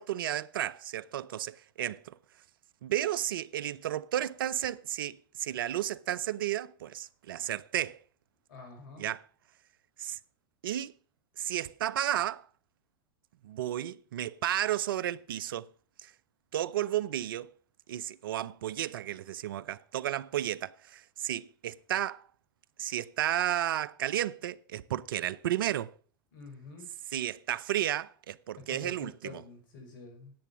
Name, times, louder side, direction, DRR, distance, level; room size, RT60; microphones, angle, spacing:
voice 1, 0.0-2.1 2.8-8.0 9.0-9.2 10.0-10.2 10.6-10.9 11.4-12.4 13.4-15.7 16.0-16.1 16.5-17.5 17.9-22.2 22.8-25.9 27.1-29.4, right 12 dB, 75° right, 0.6 m, -33 dB
voice 2, 8.5-9.1 26.3-26.9 28.6-30.3, left 4 dB, 70° left, 5.4 m, -48 dB
10.5 x 8.5 x 6.1 m
hypercardioid pair, 95°, 12 cm